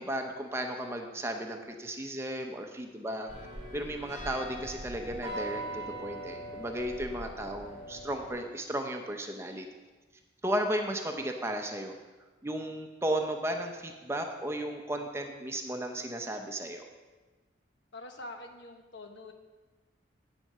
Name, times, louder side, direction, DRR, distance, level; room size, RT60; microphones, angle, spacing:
voice 1, 0.0-3.3 3.7-9.7 10.4-11.9 12.4-16.8, right 1 dB, 15° right, 4 dB, 0.7 m, -34 dB
sound 1, 3.3-8.3, right 1 dB, 35° left, 3.5 m, -41 dB
voice 2, 17.9-19.3, left 2 dB, 70° left, 5 dB, 1.1 m, -45 dB
8.9 x 7.7 x 5.5 m, 1.2 s
head